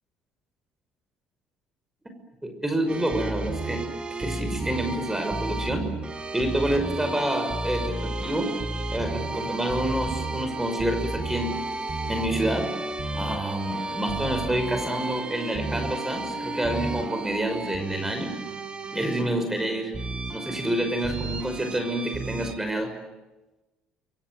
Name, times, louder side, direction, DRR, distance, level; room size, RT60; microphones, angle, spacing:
voice 1, 2.4-3.8 4.2-5.9 6.3-8.5 8.9-11.5 12.1-12.7 13.1-18.3 18.9-19.9 20.3-22.9, right 1 dB, 10° right, 6 dB, 5.8 m, -28 dB
sound 1, 2.9-22.5, right 2 dB, 30° right, 4.0 m, -32 dB
29.0 x 23.5 x 7.9 m, 1.1 s
hypercardioid pair, 55°, 4 cm